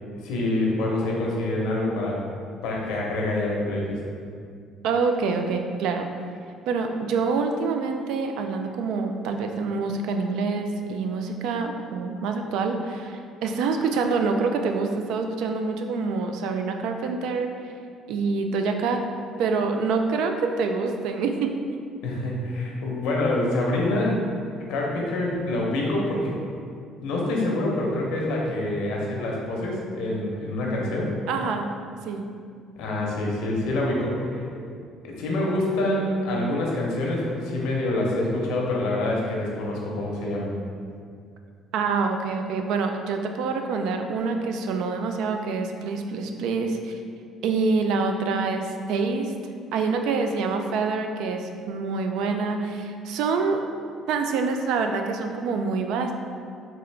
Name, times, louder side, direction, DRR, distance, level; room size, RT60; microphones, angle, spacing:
voice 1, 0.2-2.2 2.6-4.0 22.0-24.2 24.7-26.3 27.0-31.1 32.8-34.4 35.0-40.5, left 1 dB, 85° left, -2 dB, 0.8 m, -26 dB
voice 2, 4.8-6.1 6.7-17.5 18.1-19.0 19.4-21.5 31.3-31.7 32.1-32.2 41.7-47.0 47.4-49.3 49.7-53.6 54.1-56.1, right 4 dB, 75° right, 5 dB, 0.3 m, -26 dB
3.6 x 2.9 x 3.2 m, 2.2 s
cardioid pair, 140°, 0 cm